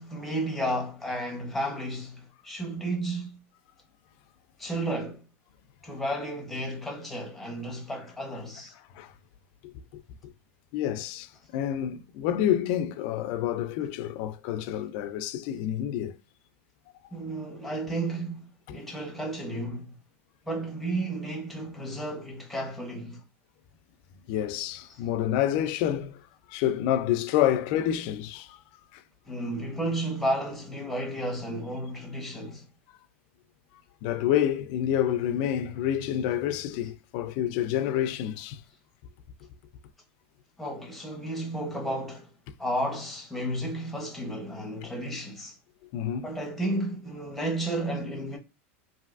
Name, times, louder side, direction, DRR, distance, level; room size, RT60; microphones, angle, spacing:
voice 1, 0.0-3.4 4.6-5.2 5.8-8.7 17.1-19.9 20.5-23.2 24.9-25.0 29.3-32.6 40.6-42.3 42.6-45.6 46.2-48.4, right 1 dB, ahead, 0.7 m, -32 dB
voice 2, 10.7-16.1 18.7-18.8 24.3-26.2 26.5-28.6 28.9-29.0 34.0-38.6 45.9-46.4, left 11 dB, 50° left, 0.3 m, -28 dB
3.2 x 2.6 x 2.4 m
supercardioid pair, 155°, 7 cm